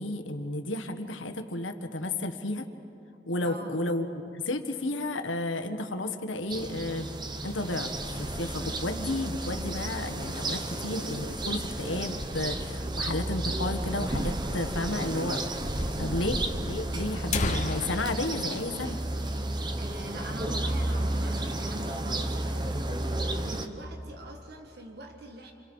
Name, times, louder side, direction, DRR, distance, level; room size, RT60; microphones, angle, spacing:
voice 1, 0.0-2.7 3.3-4.1 4.3-7.1 7.4-7.9 8.2-15.4 16.0-19.0, left 2 dB, 90° left, 7 dB, 1.5 m, -32 dB
voice 2, 3.4-3.8 16.0-16.3 19.8-25.5, right 1 dB, 55° right, 3 dB, 1.7 m, -43 dB
sound 1, 6.5-23.7, right 1 dB, 25° right, 1.1 m, -32 dB
sound 2, 12.2-12.9 13.3-13.4 13.6-13.7 14.3-14.4 15.4-15.5 15.8-15.9 16.6-16.7 17.1-19.7 20.0-20.1 20.6-20.8 21.2-21.8, left 4 dB, 40° left, 1.0 m, -37 dB
29.0 x 25.5 x 5.5 m, 3.0 s
head